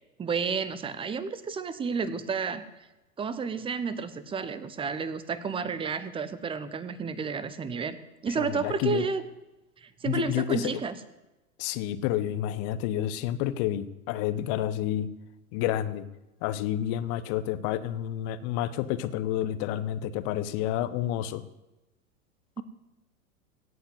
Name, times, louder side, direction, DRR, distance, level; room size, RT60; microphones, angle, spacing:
voice 1, 0.2-2.7 3.2-8.0 8.2-9.2 9.8-10.9 22.6-22.7, right 5 dB, 10° right, 15 dB, 0.8 m, -31 dB
voice 2, 8.4-9.1 10.0-10.8 11.6-15.1 15.5-16.1 16.4-21.4, left 12 dB, 35° left, 14 dB, 0.9 m, -29 dB
17.0 x 5.8 x 7.9 m, 1.0 s
figure-of-eight pair, 95°, 43 cm